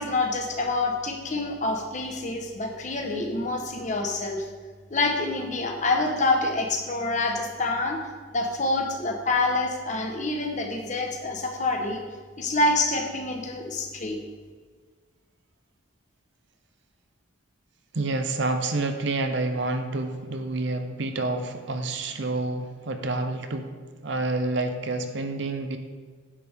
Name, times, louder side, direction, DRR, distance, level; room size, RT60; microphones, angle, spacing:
voice 1, 0.0-4.5 4.9-8.0 8.3-12.0 12.4-14.2, left 2 dB, 35° left, 3 dB, 1.0 m, -27 dB
voice 2, 17.9-23.7 24.0-25.8, right 2 dB, 60° right, 7 dB, 0.7 m, -28 dB
10.0 x 6.8 x 3.5 m, 1.5 s
head